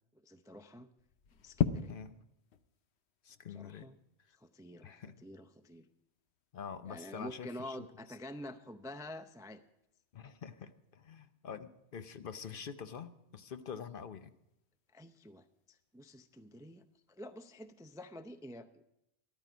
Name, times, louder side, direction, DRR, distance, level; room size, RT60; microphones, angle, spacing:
voice 1, 0.2-0.9 1.4-1.9 3.5-3.9 4.4-5.9 6.8-9.6 14.9-18.9, left 1 dB, 5° right, 9 dB, 0.4 m, -48 dB
sound 1, 1.0-18.1, left 9 dB, 85° left, 1.0 m, -45 dB
voice 2, 3.2-3.9 4.3-4.4 4.8-5.1 6.5-7.9 10.1-14.3, left 7 dB, 60° left, 10 dB, 0.8 m, -46 dB
13.5 x 12.5 x 5.0 m, 0.84 s
omnidirectional pair, 1.1 m